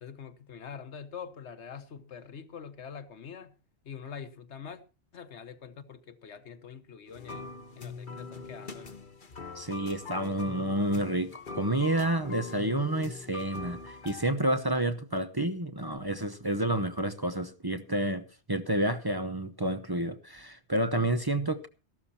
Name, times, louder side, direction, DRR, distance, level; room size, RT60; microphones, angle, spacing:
voice 1, 0.0-3.5 3.8-4.8 5.1-7.5 7.7-9.0, left 7 dB, 85° left, 1.4 m, -44 dB
sound 1, 7.1-14.3, left 4 dB, 50° left, 1.3 m, -43 dB
voice 2, 9.6-21.7, right 1 dB, 25° right, 0.8 m, -29 dB
14.5 x 12.5 x 4.2 m
omnidirectional pair, 1.1 m